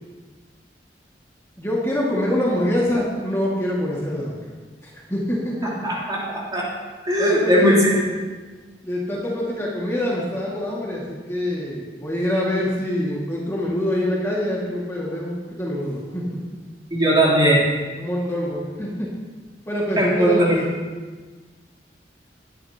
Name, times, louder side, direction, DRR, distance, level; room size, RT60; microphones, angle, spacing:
voice 1, 1.6-4.4 4.8-5.7 7.2-7.8 8.8-16.2 18.0-19.1 19.7-20.5, left 1 dB, 15° left, -5 dB, 2.0 m, -25 dB
voice 2, 5.6-6.7 7.0-8.0 16.9-17.6 20.0-20.7, equal, 25° right, -6 dB, 3.2 m, -19 dB
20.5 x 10.0 x 2.9 m, 1.4 s
head